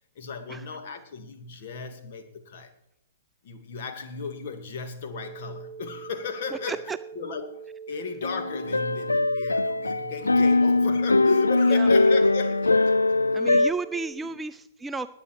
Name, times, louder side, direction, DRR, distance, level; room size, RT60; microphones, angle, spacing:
voice 1, 0.2-2.7 3.4-12.9 14.2-14.4, left 5 dB, 50° left, 7 dB, 1.9 m, -35 dB
sound 1, 5.1-14.1, right 7 dB, 15° left, 5.0 m, -42 dB
sound 2, 8.2-13.7, left 2 dB, 85° left, 0.4 m, -21 dB
voice 2, 13.3-15.1, right 3 dB, 10° right, 11 dB, 0.5 m, -32 dB
20.0 x 8.5 x 4.6 m, 0.85 s
figure-of-eight pair, 115°, 0 cm